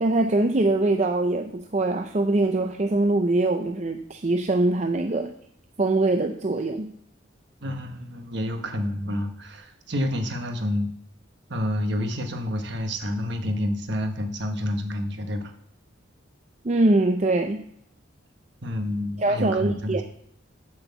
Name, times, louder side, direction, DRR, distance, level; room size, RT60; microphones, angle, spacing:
voice 1, 0.0-5.3 5.8-6.9 16.6-17.6 19.2-20.0, right 2 dB, 35° right, 5 dB, 0.5 m, -23 dB
voice 2, 7.6-10.9 11.5-15.5 18.6-20.0, left 1 dB, 55° right, 5 dB, 1.3 m, -28 dB
7.7 x 6.0 x 6.9 m, 0.68 s
head